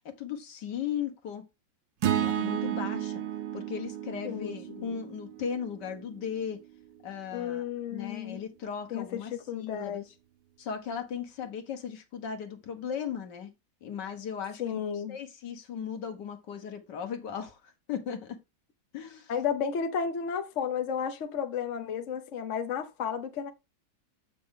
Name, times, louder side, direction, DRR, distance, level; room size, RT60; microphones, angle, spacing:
voice 1, 0.1-1.4 2.2-3.2 3.5-6.6 7.0-7.7 7.9-10.1 10.6-13.5 13.8-18.4 18.9-19.3, left 7 dB, 75° left, 1.9 m, -37 dB
sound 1, 2.0-6.3, right 10 dB, 85° right, 1.5 m, -32 dB
voice 2, 4.2-5.0 7.3-8.4 8.9-10.0 14.6-15.2 19.3-23.5, left 7 dB, 50° left, 1.1 m, -33 dB
7.7 x 5.9 x 3.7 m
omnidirectional pair, 1.9 m